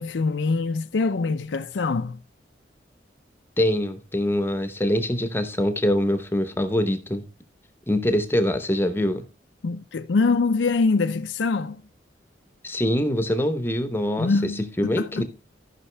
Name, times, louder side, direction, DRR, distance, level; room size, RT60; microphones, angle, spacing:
voice 1, 0.0-2.2 9.6-11.8 14.2-15.2, left 4 dB, 85° left, 0.5 m, -24 dB
voice 2, 3.6-7.2 7.9-9.2 12.6-15.2, left 1 dB, 10° left, 0.8 m, -24 dB
14.0 x 5.8 x 3.3 m
head